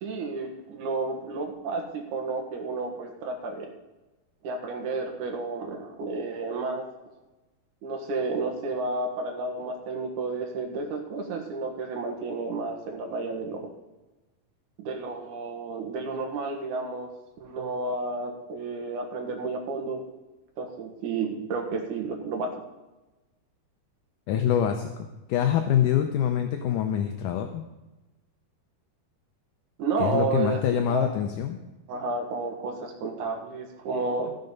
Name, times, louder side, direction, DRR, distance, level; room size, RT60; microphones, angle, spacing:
voice 1, 0.0-3.7 4.4-6.9 7.8-13.7 14.8-17.1 17.4-20.0 20.6-22.5 29.8-30.6 30.9-31.1 31.9-34.4, right 3 dB, 60° right, 2 dB, 2.7 m, -31 dB
voice 2, 24.3-27.7 30.0-31.6, left 9 dB, 80° left, 6 dB, 1.9 m, -25 dB
14.5 x 6.8 x 5.3 m, 1.1 s
omnidirectional pair, 4.4 m